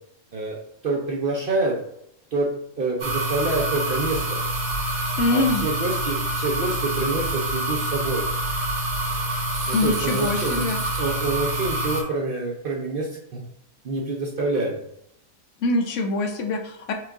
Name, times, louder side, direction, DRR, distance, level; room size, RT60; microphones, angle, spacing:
voice 1, 0.8-1.8 2.3-2.5 2.8-4.4 5.1-8.3 9.7-10.7 11.0-13.4 13.8-14.8, right 3 dB, 55° right, -1 dB, 0.7 m, -27 dB
sound 1, 3.0-12.0, right 1 dB, 80° right, 1.5 m, -26 dB
voice 2, 5.2-5.6 9.7-10.8 15.6-16.9, left 2 dB, 65° left, 4 dB, 0.9 m, -24 dB
5.9 x 2.4 x 3.5 m, 0.76 s
omnidirectional pair, 1.5 m